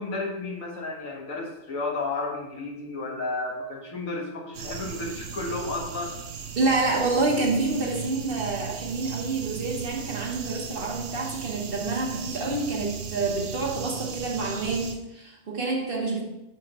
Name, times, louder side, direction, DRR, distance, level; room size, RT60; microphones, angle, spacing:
voice 1, 0.0-6.2, left 3 dB, 80° left, -1 dB, 1.8 m, -32 dB
sound 1, 4.5-14.9, right 7 dB, 70° right, 1.1 m, -37 dB
voice 2, 6.5-16.2, right 3 dB, 45° right, -1 dB, 1.4 m, -27 dB
6.0 x 6.0 x 4.4 m, 0.92 s
omnidirectional pair, 1.4 m